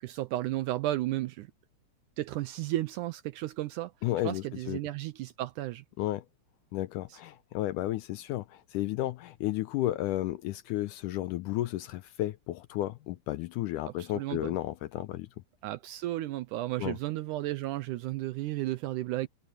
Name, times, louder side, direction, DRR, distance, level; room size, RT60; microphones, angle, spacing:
voice 1, 0.0-1.5 2.2-3.9 4.2-5.8 7.1-7.2 14.0-14.5 15.6-19.3, right 15 dB, 80° right, 1.9 m, -33 dB
voice 2, 4.0-4.8 6.0-6.3 6.7-15.3 16.8-17.0, left 15 dB, 80° left, 1.9 m, -33 dB
omnidirectional pair, 4.1 m